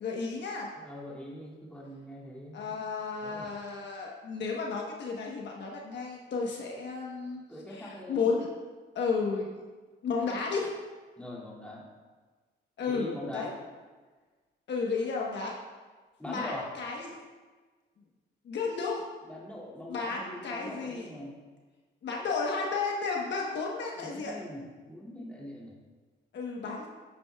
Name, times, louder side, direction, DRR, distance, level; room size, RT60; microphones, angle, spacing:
voice 1, 0.0-0.7 2.5-7.4 7.7-8.5 8.9-9.5 10.0-10.7 12.8-13.1 13.3-13.5 14.7-15.5 16.3-17.1 18.4-19.0 19.9-21.1 22.0-24.3 26.3-26.9, left 4 dB, 65° left, -1 dB, 1.1 m, -32 dB
voice 2, 0.8-2.8 3.2-3.5 7.5-8.4 11.2-11.8 12.9-13.5 16.2-16.7 19.2-21.4 24.0-25.7, left 1 dB, 5° left, -5 dB, 2.4 m, -42 dB
9.0 x 8.7 x 2.3 m, 1.4 s
cardioid pair, 90°, 20 cm